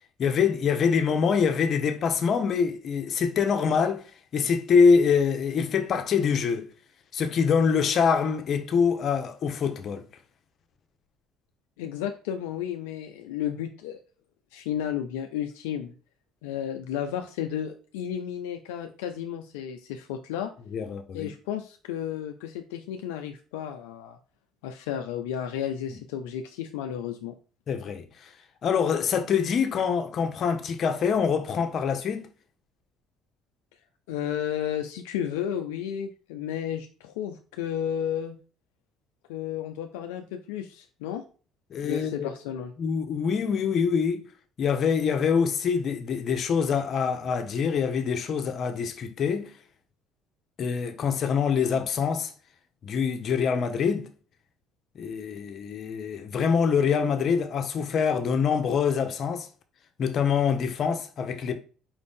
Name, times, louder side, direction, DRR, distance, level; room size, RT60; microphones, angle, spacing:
voice 1, 0.2-4.0 4.3-6.7 7.1-10.0 20.7-21.3 27.7-28.3 28.6-32.3 41.7-42.3 42.8-44.3 44.6-49.5 50.6-52.3 52.8-54.1 54.9-59.5 60.0-61.5, left 6 dB, 55° left, 0.8 m, -25 dB
voice 2, 11.8-14.0 14.5-15.9 16.4-20.5 21.1-24.2 24.6-27.3 34.1-38.4 39.3-41.2 41.8-42.7, left 9 dB, 85° left, 0.4 m, -32 dB
4.7 x 2.5 x 3.6 m
supercardioid pair, 75°, 0 cm